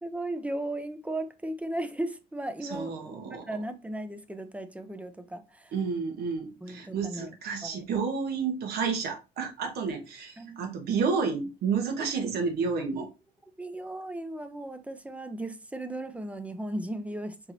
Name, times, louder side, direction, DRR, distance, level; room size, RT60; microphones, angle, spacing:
voice 1, 0.0-5.7 6.6-7.3 7.6-7.8 10.4-10.6 13.0-13.1 13.6-17.5, right 1 dB, 10° right, 0.5 m, -36 dB
voice 2, 2.7-3.4 5.7-13.1, right 5 dB, 70° right, 1.1 m, -30 dB
4.5 x 2.9 x 2.5 m
cardioid pair, 110°, 17 cm